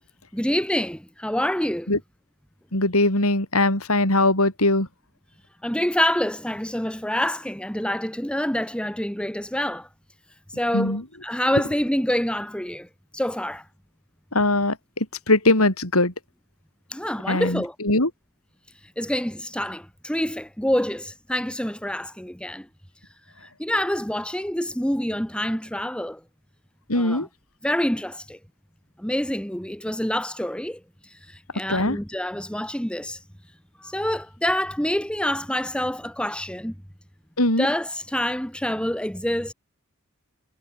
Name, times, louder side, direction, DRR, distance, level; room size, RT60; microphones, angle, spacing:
voice 1, 0.3-1.9 5.6-9.9 10.5-12.9 13.1-13.6 16.9-17.7 19.0-22.7 23.4-26.2 26.9-27.3 27.6-28.4 29.0-33.2 33.8-36.7 37.6-39.5, equal, 5° left, 3.2 m, -27 dB
voice 2, 2.7-4.9 10.7-11.0 14.3-16.1 17.3-18.1 26.9-27.3 31.7-32.0 37.4-37.7, left 2 dB, 75° left, 6.8 m, -21 dB
head